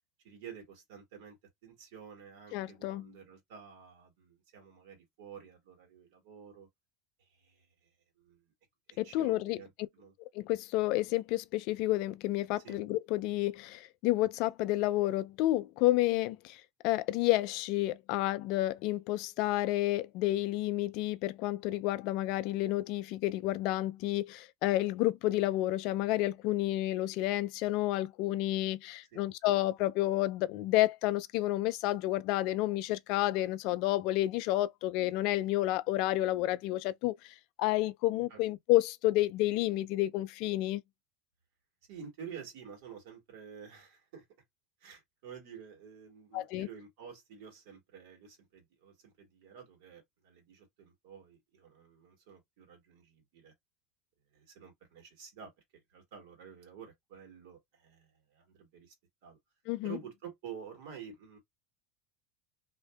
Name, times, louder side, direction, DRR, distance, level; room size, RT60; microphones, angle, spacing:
voice 1, 0.2-1.4 1.6-6.7 7.2-7.9 8.2-8.4 8.9-10.1 12.6-12.8 29.1-29.3 38.3-38.4 41.9-44.2 44.8-53.5 54.3-55.5 55.9-58.9 59.2-59.4 59.8-61.4, right 7 dB, 70° right, 1.6 m, -50 dB
voice 2, 2.5-3.1 9.0-9.6 10.3-40.8 46.3-46.7 59.7-60.0, left 16 dB, 60° left, 0.3 m, -30 dB
2.6 x 2.5 x 2.2 m
supercardioid pair, 105°, 0 cm